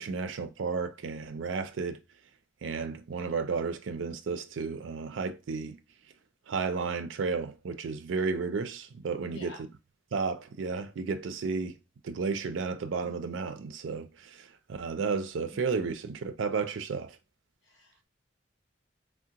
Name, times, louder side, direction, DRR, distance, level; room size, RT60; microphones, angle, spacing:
voice 1, 0.0-2.0 2.6-5.8 6.5-9.5 10.1-11.7 12.0-17.2, right 5 dB, 80° right, 0.4 m, -33 dB
voice 2, 9.3-9.6 17.6-18.1, left 2 dB, 70° left, 1.0 m, -47 dB
3.5 x 2.1 x 2.8 m
head